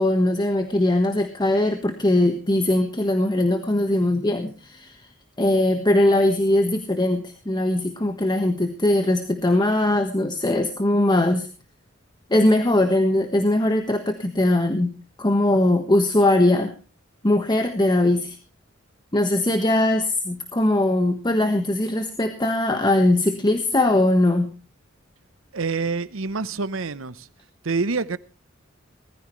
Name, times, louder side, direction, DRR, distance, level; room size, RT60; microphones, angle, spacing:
voice 1, 0.0-5.0 5.4-11.5 12.3-16.7 17.2-18.4 19.1-24.5, left 1 dB, 20° left, 1.4 m, -20 dB
voice 2, 25.5-27.3 27.6-28.2, right 4 dB, 90° right, 0.9 m, -26 dB
19.5 x 14.5 x 3.2 m
head